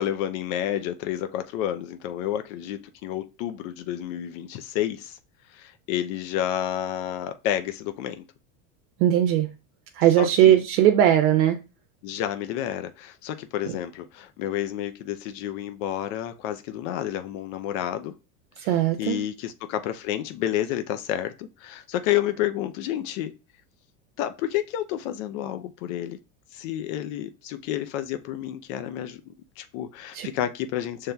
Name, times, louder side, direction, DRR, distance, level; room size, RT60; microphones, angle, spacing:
voice 1, 0.0-5.2 5.5-8.2 10.2-10.6 12.0-18.1 18.6-23.3 24.2-26.2 26.5-31.1, left 11 dB, 65° left, 0.5 m, -30 dB
voice 2, 9.0-9.5 10.0-11.6 18.6-19.2 30.1-30.3, right 11 dB, 75° right, 0.6 m, -19 dB
5.5 x 3.2 x 2.2 m
supercardioid pair, 110°, 43 cm